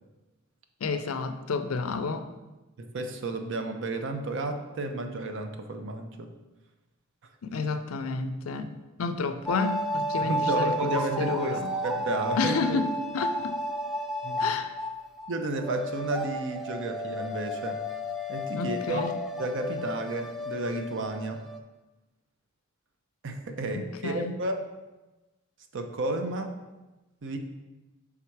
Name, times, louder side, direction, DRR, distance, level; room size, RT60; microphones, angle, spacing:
voice 1, 0.8-2.3 7.4-8.7 9.0-11.7 12.4-13.6 14.4-14.7 18.5-19.1 24.0-24.3, left 4 dB, 80° left, 9 dB, 0.5 m, -30 dB
voice 2, 2.8-6.3 10.2-12.8 14.2-14.5 15.3-17.8 18.3-21.4 23.2-24.6 25.7-26.5 27.2-27.4, right 2 dB, 60° right, 5 dB, 0.6 m, -32 dB
sound 1, 9.5-15.3 15.6-21.6, equal, ahead, 0.3 m, -32 dB
5.7 x 3.6 x 4.6 m, 1.1 s
head